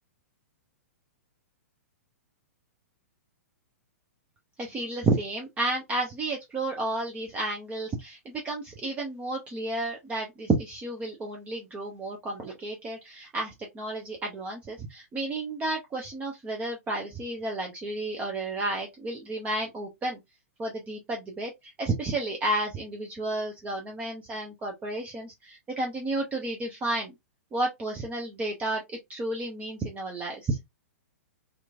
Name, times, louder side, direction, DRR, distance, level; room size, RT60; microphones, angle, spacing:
voice 1, 4.6-20.2 20.6-27.1 27.5-30.6, right 2 dB, 15° right, 0.6 m, -31 dB
2.9 x 2.5 x 2.3 m
hypercardioid pair, 115°, 8 cm